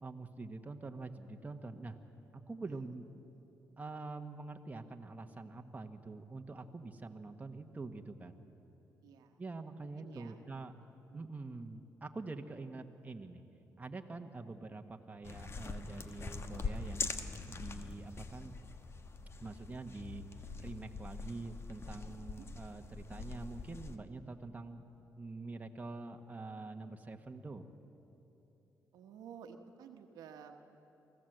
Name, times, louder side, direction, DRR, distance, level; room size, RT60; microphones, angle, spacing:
voice 1, 0.0-2.0 2.3-3.1 3.8-8.4 9.4-10.7 11.1-13.4 13.8-18.5 19.4-20.2 20.6-24.8 25.2-27.6, right 3 dB, 25° right, 5 dB, 1.3 m, -45 dB
voice 2, 9.0-9.3 9.8-10.4 11.1-11.3 22.2-22.4 28.9-30.8, right 7 dB, 85° right, 5 dB, 1.2 m, -53 dB
sound 1, 15.2-24.0, left 4 dB, 40° left, 1.2 m, -43 dB
24.0 x 15.5 x 7.9 m, 3.0 s
cardioid pair, 75°, 6 cm